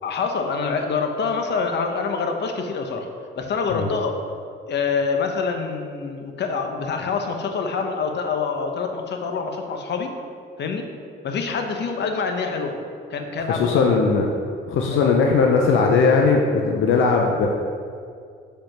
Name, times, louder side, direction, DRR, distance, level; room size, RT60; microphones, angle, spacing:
voice 1, 0.0-3.1 3.4-4.2 4.7-10.1 10.6-10.9 11.2-12.7 13.1-14.0 14.9-15.1, left 5 dB, 60° left, 4 dB, 1.0 m, -26 dB
voice 2, 13.5-14.3 14.7-17.5, left 4 dB, 80° left, 1 dB, 0.8 m, -18 dB
6.8 x 5.4 x 6.0 m, 2.3 s
cardioid pair, 90°, 20 cm